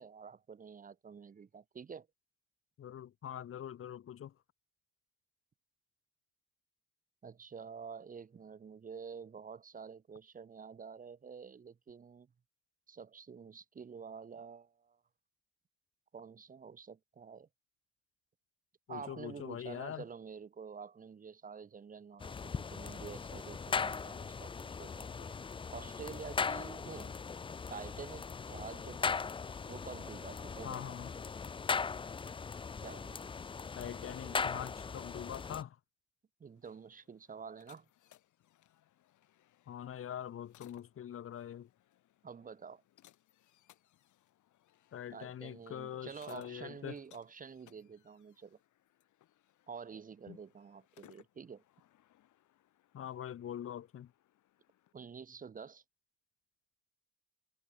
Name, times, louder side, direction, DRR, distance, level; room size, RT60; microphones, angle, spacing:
voice 1, 0.0-2.1 7.2-12.3 12.9-15.0 16.1-17.5 18.9-25.3 25.7-27.1 27.7-29.3 29.7-30.9 32.8-33.2 34.2-34.5 36.4-37.8 42.2-42.8 45.1-48.6 49.7-51.6 54.9-55.8, right 6 dB, 25° right, 1.5 m, -48 dB
voice 2, 2.8-4.3 18.9-20.0 30.6-31.1 33.8-35.8 39.7-41.7 44.9-47.0 50.3-50.4 52.9-54.1, left 10 dB, 45° left, 1.7 m, -43 dB
sound 1, 22.2-35.6, left 5 dB, 15° left, 0.5 m, -39 dB
sound 2, 36.4-54.9, left 13 dB, 80° left, 7.0 m, -66 dB
cardioid pair, 175°, 30 cm